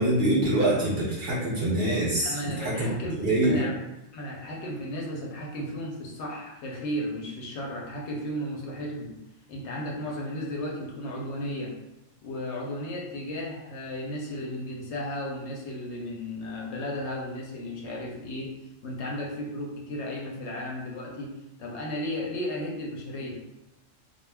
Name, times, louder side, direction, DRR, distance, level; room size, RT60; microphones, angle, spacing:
voice 1, 0.0-2.9 3.2-3.6, right 1 dB, 50° right, -6 dB, 0.7 m, -25 dB
voice 2, 2.2-3.8 4.1-9.2 9.5-11.8 12.2-18.6 18.8-23.4, left 1 dB, 70° left, -2 dB, 0.8 m, -34 dB
2.2 x 2.0 x 3.3 m, 0.91 s
omnidirectional pair, 1.3 m